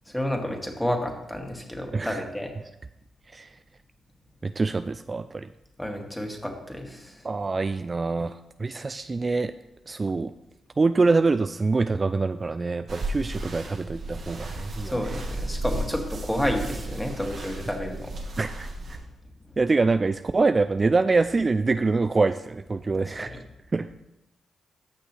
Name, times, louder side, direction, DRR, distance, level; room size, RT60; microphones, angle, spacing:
voice 1, 0.1-2.5 5.8-7.3 14.8-18.1 23.0-23.4, equal, 5° left, 2 dB, 2.2 m, -30 dB
voice 2, 1.9-2.2 3.3-3.5 4.4-5.5 7.2-9.5 9.9-10.3 10.8-15.0 18.4-19.0 19.6-23.3 23.7-23.9, right 3 dB, 35° right, 10 dB, 0.3 m, -25 dB
sound 1, 12.9-19.0, right 1 dB, 60° right, 2.0 m, -34 dB
14.0 x 6.0 x 3.3 m, 0.90 s
hypercardioid pair, 40°, 0 cm